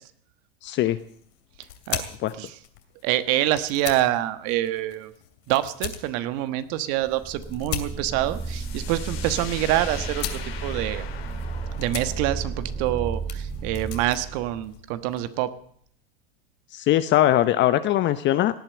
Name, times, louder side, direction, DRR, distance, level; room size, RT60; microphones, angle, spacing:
voice 1, 0.6-1.0 2.2-2.3 16.7-18.6, left 13 dB, 40° left, 12 dB, 0.8 m, -21 dB
sound 1, 0.8-15.4, left 12 dB, 65° left, 2.6 m, -40 dB
voice 2, 3.0-5.1 5.5-11.1 11.8-15.5, right 14 dB, 55° right, 12 dB, 1.3 m, -26 dB
sound 2, 7.0-14.7, right 4 dB, 15° right, 1.0 m, -33 dB
sound 3, 8.2-15.8, left 8 dB, 80° left, 3.9 m, -42 dB
18.0 x 8.9 x 8.6 m, 0.64 s
hypercardioid pair, 105°, 30 cm